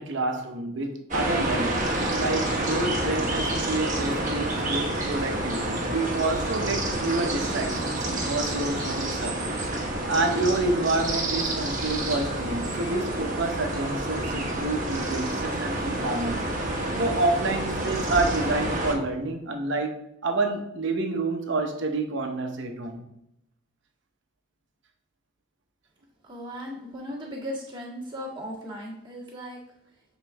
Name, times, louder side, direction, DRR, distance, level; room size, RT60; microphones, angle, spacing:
voice 1, 0.0-9.5 10.1-16.4 17.0-23.0, right 2 dB, 60° right, 4 dB, 0.9 m, -28 dB
sound 1, 1.1-18.9, right 1 dB, 40° right, 1.2 m, -28 dB
voice 2, 26.2-29.6, equal, 20° right, -5 dB, 1.7 m, -37 dB
7.3 x 3.9 x 3.5 m, 0.81 s
head